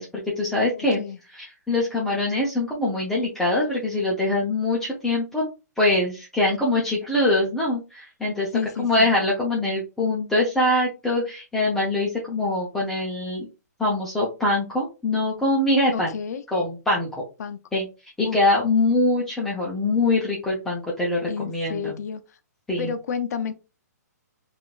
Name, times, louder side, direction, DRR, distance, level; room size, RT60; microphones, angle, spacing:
voice 1, 0.0-1.0 1.3-5.5 5.8-8.5 8.8-13.5 13.8-16.1 16.5-17.1 17.7-17.9 18.2-22.0 22.7-22.9, left 2 dB, 5° left, 0.5 m, -23 dB
voice 2, 0.6-1.2 6.7-6.8 8.5-9.1 15.9-16.4 17.4-17.6 18.2-18.4 21.3-22.4 22.8-23.5, left 7 dB, 65° left, 0.4 m, -31 dB
3.7 x 2.4 x 2.3 m
hypercardioid pair, 150°, 9 cm